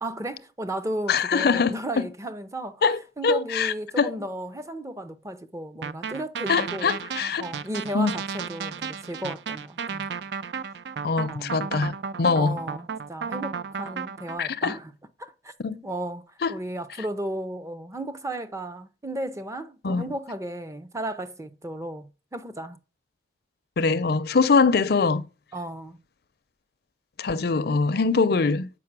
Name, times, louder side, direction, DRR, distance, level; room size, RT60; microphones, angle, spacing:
voice 1, 0.0-2.8 3.2-6.9 7.4-10.1 11.3-11.6 12.3-14.9 15.2-15.5 15.8-22.8 25.5-26.0, right 1 dB, 15° right, 0.6 m, -34 dB
voice 2, 1.1-1.8 2.8-4.1 6.5-7.4 7.9-8.1 11.0-12.6 14.4-14.8 15.6-15.8 16.4-16.5 19.8-20.1 23.8-25.2 27.2-28.7, left 4 dB, 60° left, 0.5 m, -23 dB
sound 1, 5.8-14.4, right 6 dB, 70° right, 0.4 m, -34 dB
7.5 x 5.4 x 5.9 m
head